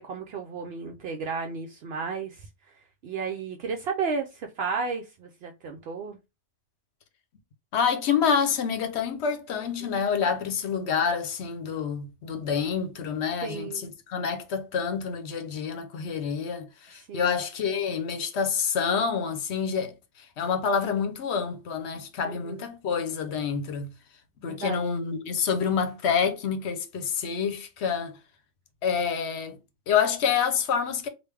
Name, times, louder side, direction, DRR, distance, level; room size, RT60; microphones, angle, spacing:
voice 1, 0.0-2.5 3.0-6.2 9.8-9.9 13.4-13.9 17.1-17.3 22.4-22.6 24.5-24.8, right 5 dB, 65° right, 0.7 m, -33 dB
voice 2, 7.7-23.9 24.4-28.2 28.8-29.6 29.9-31.1, left 6 dB, 70° left, 1.0 m, -27 dB
3.4 x 2.4 x 3.2 m
omnidirectional pair, 1.2 m